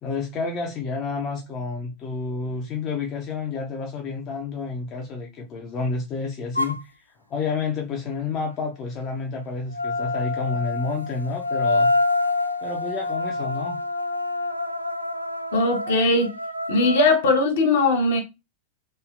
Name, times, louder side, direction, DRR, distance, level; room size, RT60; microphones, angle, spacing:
voice 1, 0.0-6.9 7.3-11.9 12.6-13.8, left 4 dB, 35° left, 0.6 m, -30 dB
sound 1, 6.6-6.8 9.7-17.2, left 2 dB, 85° right, 0.3 m, -26 dB
voice 2, 15.5-16.3 16.7-18.2, left 2 dB, 60° left, 0.9 m, -19 dB
3.1 x 2.7 x 2.3 m
figure-of-eight pair, 90°, 0 cm